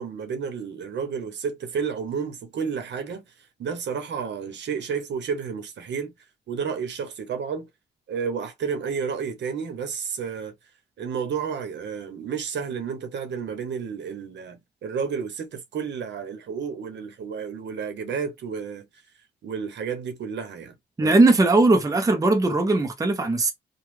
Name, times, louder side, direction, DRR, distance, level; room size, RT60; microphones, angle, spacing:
voice 1, 0.0-3.2 3.6-6.1 6.5-7.7 8.1-10.5 11.0-18.9 19.4-21.1, right 6 dB, 65° right, 1.0 m, -31 dB
voice 2, 21.0-23.5, right 2 dB, 15° right, 0.7 m, -19 dB
3.0 x 2.3 x 3.3 m
cardioid pair, 90°, 20 cm